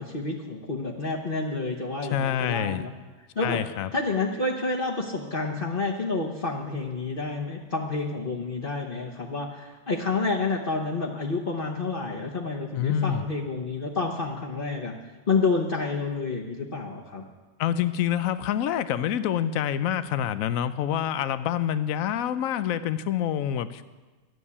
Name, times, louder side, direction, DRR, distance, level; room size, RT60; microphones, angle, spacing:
voice 1, 0.0-2.9 3.3-3.6 3.9-14.9 15.3-17.2, left 3 dB, 40° left, -3 dB, 1.2 m, -29 dB
voice 2, 2.1-2.8 3.4-3.9 12.7-13.2 17.6-23.8, left 10 dB, 80° left, 13 dB, 1.0 m, -27 dB
12.5 x 7.2 x 9.7 m, 1.2 s
omnidirectional pair, 1.4 m